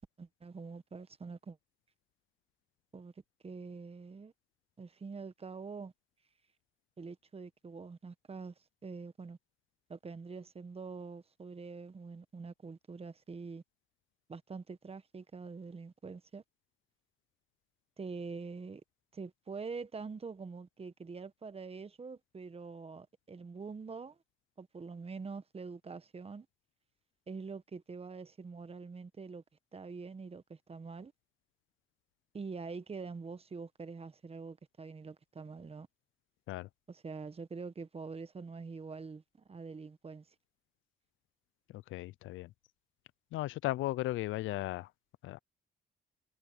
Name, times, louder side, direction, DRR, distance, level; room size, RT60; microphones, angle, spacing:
voice 1, 0.2-1.6 2.9-3.1 3.4-4.3 4.8-5.9 7.0-8.5 8.8-9.4 9.9-13.6 14.3-16.4 18.0-18.8 19.1-24.2 24.6-26.5 27.3-29.4 29.7-31.1 32.3-35.9 36.9-39.2 39.5-40.2, right 4 dB, 30° right, 1.3 m, -45 dB
voice 2, 41.7-42.5 43.3-44.9 45.2-45.4, left 17 dB, 80° left, 0.4 m, -36 dB
cardioid pair, 90°, 20 cm